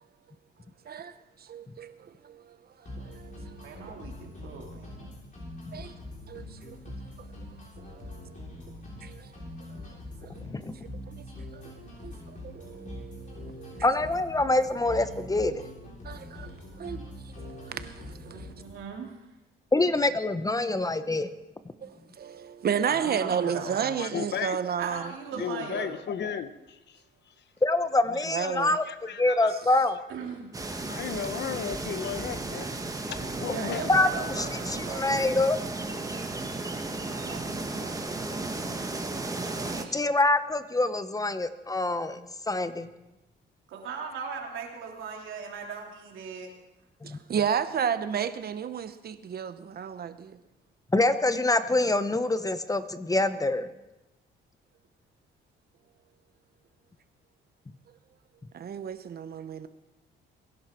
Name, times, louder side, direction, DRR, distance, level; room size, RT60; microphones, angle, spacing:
voice 1, 1.4-2.6 2.8-3.9 5.7-5.9 6.3-6.8 7.8-8.4 9.0-9.3 9.7-9.9 10.2-10.5 11.1-11.2 11.5-11.7 12.0-12.1 12.4-13.9 16.0-18.5 21.8-25.0 25.4-25.5 28.3-28.8 39.0-39.2 39.6-40.1 47.0-50.4 58.5-59.7, right 7 dB, 50° right, 1.1 m, -33 dB
sound 1, 2.9-18.9, left 1 dB, 40° left, 6.7 m, -43 dB
voice 2, 3.6-5.1 18.3-19.2 19.8-19.9 20.6-20.8 22.9-24.0 24.8-25.9 30.1-30.5 33.4-35.2 37.0-38.1 43.7-46.5 47.1-47.2, right 6 dB, 85° right, 3.0 m, -39 dB
voice 3, 13.8-15.6 19.7-21.3 27.6-28.8 29.2-30.0 33.9-34.1 34.4-35.6 39.9-42.9 47.0-47.2 50.9-53.7, left 2 dB, 15° left, 0.9 m, -25 dB
voice 4, 24.0-24.6 25.4-27.0 28.4-29.6 30.9-32.7 33.1-33.9, left 8 dB, 60° left, 1.1 m, -35 dB
sound 2, 30.5-39.9, right 2 dB, 15° right, 1.4 m, -34 dB
22.5 x 11.0 x 4.5 m
cardioid pair, 90°, 20 cm